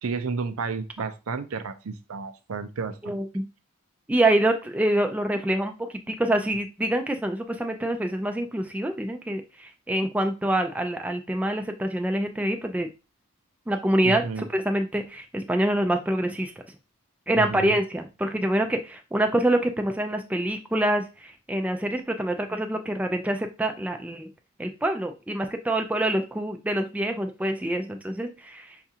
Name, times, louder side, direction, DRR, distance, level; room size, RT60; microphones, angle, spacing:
voice 1, 0.0-3.2 14.0-14.5 17.3-17.8, right 4 dB, 80° right, 9 dB, 0.5 m, -32 dB
voice 2, 3.0-3.4 4.1-12.9 13.7-16.5 17.3-24.3 24.6-28.7, right 1 dB, 5° right, 4 dB, 0.3 m, -26 dB
5.7 x 2.4 x 2.7 m, 0.30 s
head